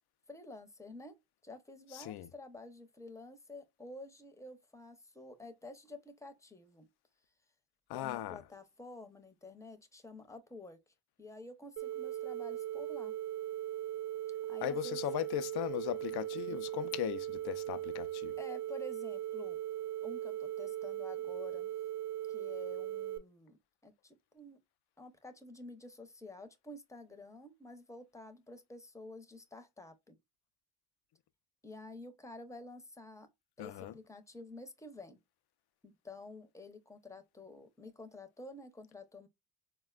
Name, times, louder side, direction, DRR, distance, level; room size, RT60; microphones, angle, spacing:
voice 1, 0.3-1.1 1.4-6.9 7.9-10.8 11.2-13.2 14.5-15.0 18.4-19.6 20.0-21.7 22.3-24.6 25.0-30.2 31.6-33.3 33.6-35.2 35.8-39.3, left 2 dB, 5° left, 0.7 m, -50 dB
voice 2, 1.9-2.3 7.9-8.4 14.6-18.4 33.6-33.9, left 14 dB, 65° left, 0.5 m, -38 dB
sound 1, 11.8-23.2, right 12 dB, 65° right, 0.8 m, -39 dB
4.1 x 2.2 x 2.3 m
cardioid pair, 80°, 41 cm